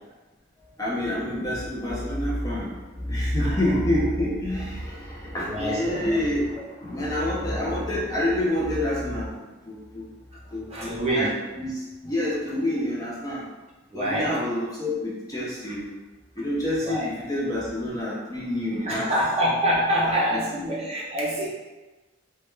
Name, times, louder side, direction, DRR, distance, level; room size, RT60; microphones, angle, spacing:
voice 1, 0.8-10.1 10.5-11.3 11.6-13.4 13.9-15.9 16.4-19.1 20.0-20.4, left 1 dB, 20° left, -6 dB, 0.4 m, -28 dB
voice 2, 3.4-3.7 5.4-6.1 10.7-11.3 13.9-14.3 16.8-17.1 18.8-21.5, equal, 30° right, -6 dB, 0.6 m, -26 dB
2.2 x 2.1 x 3.0 m, 1.2 s
head